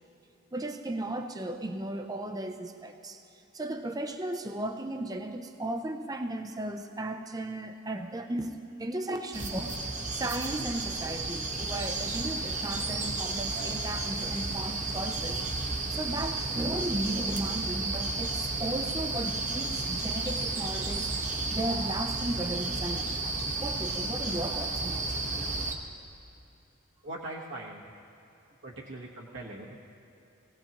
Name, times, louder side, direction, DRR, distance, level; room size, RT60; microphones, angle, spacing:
voice 1, 0.5-3.2 3.5-9.8 10.1-25.2, right 1 dB, 15° right, 6 dB, 0.5 m, -35 dB
sound 1, 9.3-25.7, right 3 dB, 35° right, 1.0 m, -32 dB
voice 2, 27.0-27.8 28.6-29.8, right 2 dB, 60° right, -4 dB, 1.2 m, -41 dB
19.5 x 16.5 x 2.9 m, 2.9 s
head